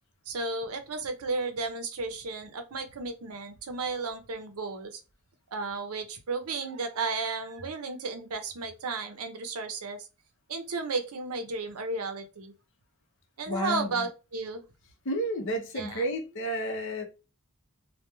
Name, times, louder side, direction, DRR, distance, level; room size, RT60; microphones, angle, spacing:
voice 1, 0.3-5.0 5.5-10.1 10.5-12.5 13.4-14.6 15.8-16.1, right 3 dB, 75° right, 0.6 m, -33 dB
voice 2, 13.5-14.1 15.0-17.0, equal, 60° left, 0.7 m, -31 dB
2.9 x 2.2 x 2.2 m
head